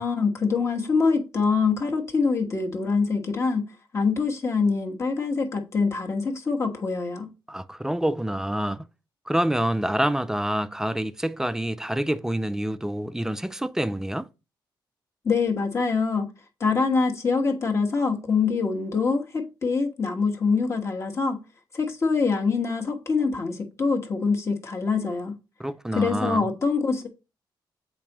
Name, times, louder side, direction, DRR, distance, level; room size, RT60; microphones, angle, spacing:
voice 1, 0.0-3.6 3.9-7.3 15.2-16.3 16.6-21.4 21.7-25.3 25.9-27.1, left 4 dB, 35° left, 1.3 m, -24 dB
voice 2, 7.5-8.9 9.3-14.3 25.6-26.4, right 1 dB, 5° right, 0.3 m, -27 dB
7.2 x 4.5 x 2.9 m
cardioid pair, 125°, 8 cm